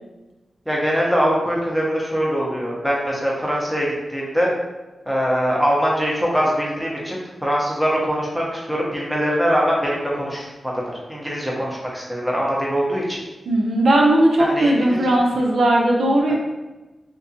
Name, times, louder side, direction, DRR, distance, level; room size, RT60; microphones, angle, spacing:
voice 1, 0.7-4.5 5.1-13.2 14.4-15.1 16.3-16.4, equal, 5° right, -4 dB, 0.9 m, -22 dB
voice 2, 13.5-16.3, right 1 dB, 75° right, -1 dB, 0.6 m, -17 dB
3.6 x 2.7 x 2.8 m, 1.1 s
wide cardioid pair, 85°, 0 cm